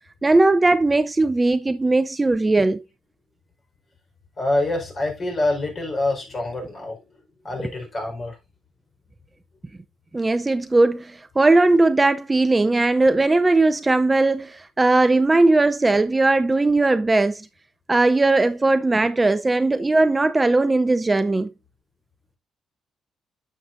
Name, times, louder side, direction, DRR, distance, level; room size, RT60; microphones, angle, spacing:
voice 1, 0.2-2.8 10.1-17.5 17.9-21.5, right 2 dB, 20° right, 0.5 m, -18 dB
voice 2, 4.4-7.1 7.4-8.4, left 2 dB, 40° left, 4.4 m, -26 dB
9.9 x 6.6 x 2.6 m
cardioid pair, 90°, 0 cm